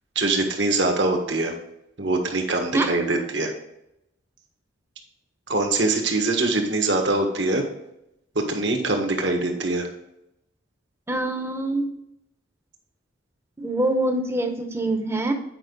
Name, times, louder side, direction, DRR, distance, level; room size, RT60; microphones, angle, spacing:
voice 1, 0.1-1.5 2.0-3.5 5.5-7.6 8.3-9.9, right 2 dB, 60° right, 3 dB, 1.5 m, -23 dB
voice 2, 11.1-11.9 13.6-15.3, right 2 dB, 10° right, 5 dB, 0.9 m, -24 dB
8.9 x 5.5 x 3.9 m, 0.84 s
head